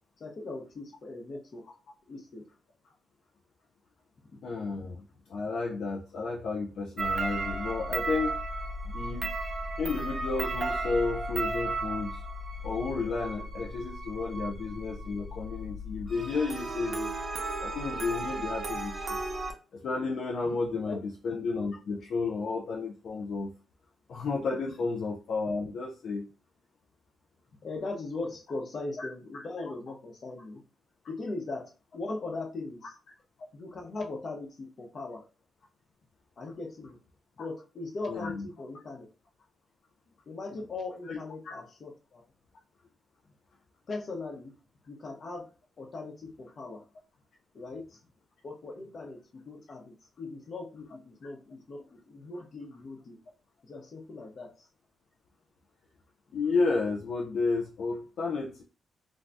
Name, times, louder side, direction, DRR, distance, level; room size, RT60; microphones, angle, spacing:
voice 1, 0.2-1.6 2.1-2.5 4.2-4.4 20.4-21.0 27.6-30.6 31.1-32.9 33.5-35.2 36.4-37.0 37.4-39.1 40.3-42.2 43.9-44.5 44.9-45.5 45.8-46.8 47.5-48.0 48.4-53.2 53.6-54.7, left 3 dB, 50° left, 0 dB, 0.9 m, -39 dB
voice 2, 4.4-5.0 5.3-8.4 8.9-9.3 9.8-12.2 12.6-17.2 17.6-19.2 19.8-21.0 21.2-23.5 24.1-26.3 29.0-29.1 29.3-29.4 38.1-38.4 41.1-41.2 41.4-41.6 56.3-58.6, left 4 dB, 70° left, -1 dB, 0.5 m, -32 dB
sound 1, 7.0-19.5, right 2 dB, 35° right, 0.7 m, -35 dB
2.6 x 2.3 x 3.3 m, 0.34 s
cardioid pair, 95°, 0 cm